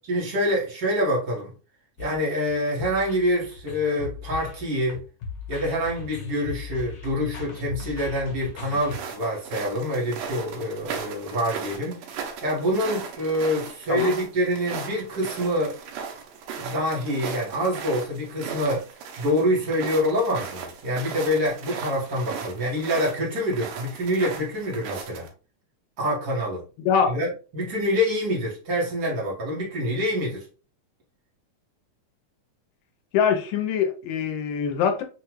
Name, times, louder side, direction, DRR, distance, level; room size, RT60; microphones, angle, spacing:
voice 1, 0.1-1.5 2.0-5.0 5.5-15.8 16.5-18.8 19.2-25.3 26.0-26.6 27.1-30.4, equal, 55° right, 1.0 m, -26 dB
sound 1, 2.0-9.0, left 5 dB, 60° left, 2.3 m, -38 dB
sound 2, 8.8-25.3, right 6 dB, 80° right, 2.5 m, -37 dB
voice 2, 26.9-27.2 33.1-35.0, left 7 dB, 80° left, 2.3 m, -23 dB
5.7 x 2.3 x 3.0 m
omnidirectional pair, 3.9 m